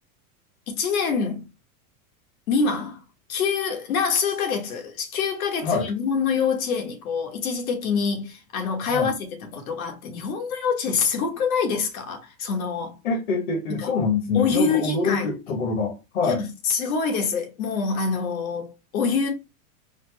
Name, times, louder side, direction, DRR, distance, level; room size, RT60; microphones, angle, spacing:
voice 1, 0.7-1.5 2.5-3.0 3.3-9.1 9.4-13.0 13.8-13.9 14.3-15.3 16.2-19.3, left 5 dB, 75° left, 1.4 m, -25 dB
voice 2, 13.0-16.4, left 4 dB, 55° left, 1.2 m, -25 dB
4.1 x 2.1 x 3.2 m
supercardioid pair, 170°, 43 cm